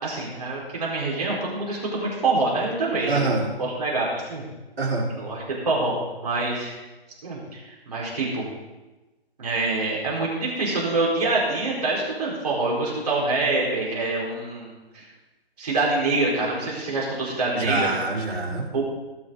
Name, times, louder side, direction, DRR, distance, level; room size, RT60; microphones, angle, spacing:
voice 1, 0.0-4.4 5.2-6.7 7.2-8.4 9.4-15.0 15.6-17.9 18.7-18.8, right 2 dB, 40° right, -5 dB, 4.7 m, -26 dB
voice 2, 3.1-3.4 4.8-5.1 17.5-18.8, right 3 dB, 70° right, -4 dB, 4.6 m, -25 dB
19.0 x 10.0 x 4.0 m, 1.1 s
hypercardioid pair, 165°, 31 cm